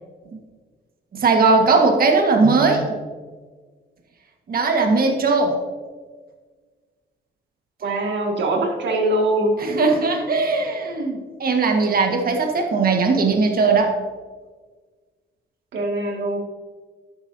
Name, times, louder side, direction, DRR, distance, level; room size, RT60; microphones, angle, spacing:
voice 1, 1.1-2.9 4.5-5.6 9.6-13.9, right 4 dB, 50° right, 3 dB, 1.6 m, -19 dB
voice 2, 7.8-9.6 15.7-16.4, right 1 dB, 65° right, 1 dB, 2.2 m, -22 dB
11.5 x 9.1 x 2.8 m, 1.4 s
cardioid pair, 90°, 20 cm